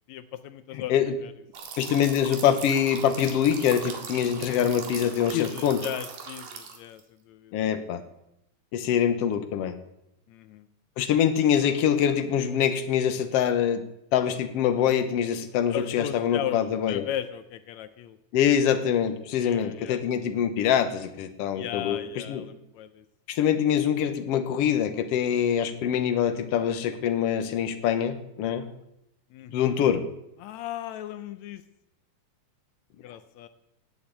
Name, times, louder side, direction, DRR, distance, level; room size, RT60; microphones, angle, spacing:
voice 1, 0.1-1.3 5.3-7.6 10.3-10.7 15.7-18.2 19.3-20.0 21.5-23.0 29.3-29.8 30.4-31.6 33.0-33.5, left 11 dB, 90° left, 11 dB, 1.6 m, -36 dB
sound 1, 1.5-7.0, right 6 dB, 70° right, 3.6 m, -40 dB
voice 2, 1.8-5.8 7.5-8.0 8.7-9.8 11.0-13.8 14.1-17.0 18.3-22.0 22.3-22.4 23.3-28.7 29.5-30.0, left 9 dB, 65° left, 9 dB, 1.6 m, -24 dB
17.5 x 8.6 x 8.3 m, 0.86 s
omnidirectional pair, 4.0 m